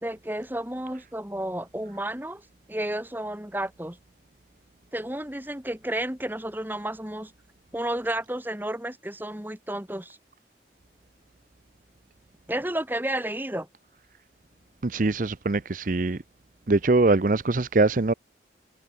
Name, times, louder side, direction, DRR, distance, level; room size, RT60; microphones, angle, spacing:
voice 1, 0.0-2.4 2.7-4.0 4.9-7.3 7.7-10.2 12.5-13.7, right 1 dB, 10° right, 2.0 m, -31 dB
voice 2, 14.8-16.2 16.7-18.1, right 3 dB, 50° right, 0.7 m, -22 dB
head